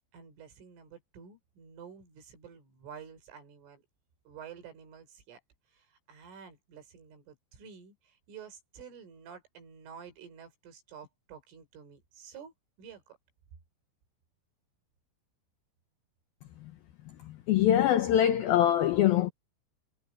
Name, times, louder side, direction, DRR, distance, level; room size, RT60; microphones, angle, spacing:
voice 1, 0.1-3.8 4.3-5.4 5.7-12.5 12.8-13.2, right 7 dB, 80° right, 7.2 m, -50 dB
voice 2, 17.3-19.3, left 11 dB, 85° left, 2.1 m, -24 dB
omnidirectional pair, 5.6 m